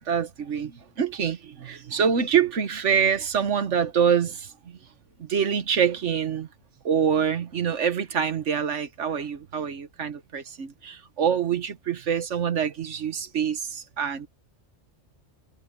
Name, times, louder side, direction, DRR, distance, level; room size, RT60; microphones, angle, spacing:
voice 1, 0.1-4.8 5.2-6.5 6.8-14.3, right 7 dB, 85° right, 1.5 m, -25 dB
omnidirectional pair, 1.2 m